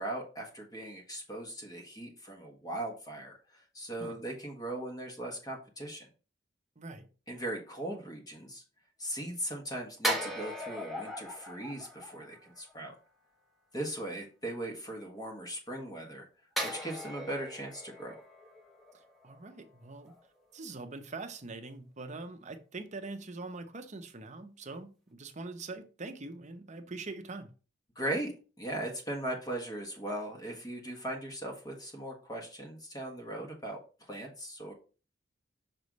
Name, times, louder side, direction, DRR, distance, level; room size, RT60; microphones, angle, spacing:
voice 1, 0.0-6.1 7.3-8.6 9.0-12.9 13.7-16.3 16.6-18.2 27.9-33.8 34.1-34.7, right 1 dB, 20° left, 1.5 m, -39 dB
voice 2, 6.8-7.1 18.9-20.1 20.5-27.5, right 3 dB, 40° right, 0.8 m, -43 dB
sound 1, 10.0-12.7 16.6-19.8 20.1-20.3, equal, ahead, 1.1 m, -38 dB
6.1 x 3.3 x 5.2 m
head